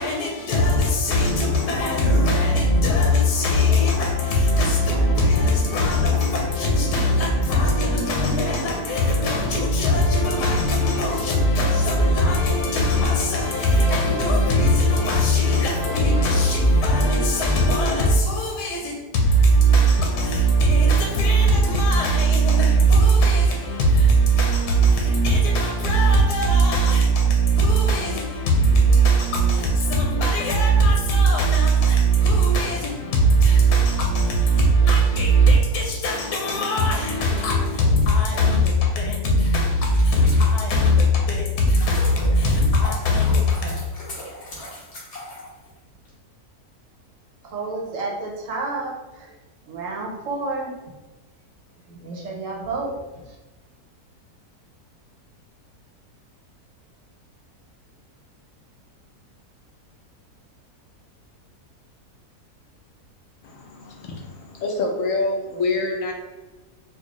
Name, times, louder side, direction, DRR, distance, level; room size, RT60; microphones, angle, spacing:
voice 1, 0.0-43.7, right 1 dB, 85° left, 1.2 m, -19 dB
sound 1, 36.9-40.9 41.4-46.1, left 1 dB, 50° left, 1.2 m, -40 dB
voice 2, 47.4-49.4 49.6-50.9 51.9-53.4, right 3 dB, 65° right, 0.9 m, -31 dB
voice 3, 63.4-66.1, left 3 dB, 70° left, 0.9 m, -26 dB
4.5 x 2.3 x 3.0 m
omnidirectional pair, 1.7 m